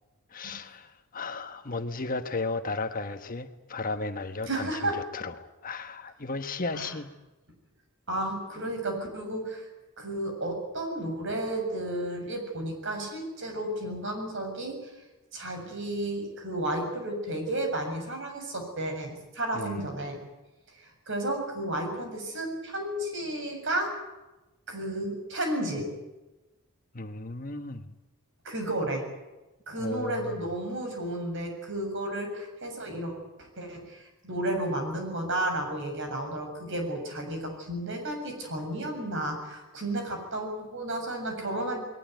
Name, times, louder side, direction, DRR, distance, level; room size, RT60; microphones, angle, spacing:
voice 1, 0.3-4.7 5.1-7.1 19.5-19.8 26.9-27.8 29.8-30.4, left 3 dB, 40° left, 8 dB, 1.3 m, -34 dB
voice 2, 4.5-5.0 6.7-6.9 8.1-9.7 10.0-14.9 15.3-20.2 20.8-23.9 24.7-25.9 28.5-29.0 29.7-41.8, right 1 dB, 55° right, 4 dB, 7.1 m, -32 dB
21.5 x 19.5 x 9.4 m, 1.0 s
head